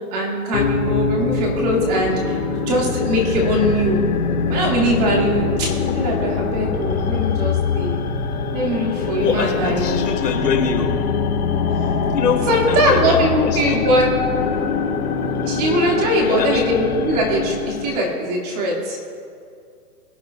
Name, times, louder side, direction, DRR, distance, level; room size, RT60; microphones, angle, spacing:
voice 1, 0.1-2.4 2.7-4.0 4.5-8.0 8.5-10.1 12.5-14.1 15.4-19.0, right 1 dB, 25° right, -2 dB, 2.2 m, -21 dB
sound 1, 0.5-18.0, left 5 dB, 65° left, 1.7 m, -23 dB
voice 2, 9.2-10.9 12.1-13.8 16.1-16.7, left 6 dB, 80° left, 2 dB, 2.5 m, -24 dB
22.5 x 10.5 x 2.4 m, 2.3 s
hypercardioid pair, 170°, 47 cm